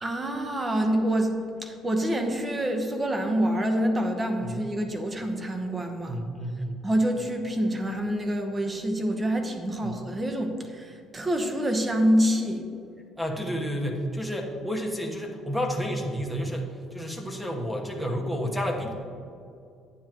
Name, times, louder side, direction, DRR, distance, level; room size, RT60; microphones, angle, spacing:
voice 1, 0.0-6.2 6.8-12.7, equal, 20° right, 5 dB, 1.0 m, -26 dB
voice 2, 6.1-6.8 9.8-9.9 13.2-18.9, equal, ahead, 1 dB, 1.2 m, -30 dB
11.0 x 9.8 x 3.0 m, 2.5 s
cardioid pair, 140°, 0 cm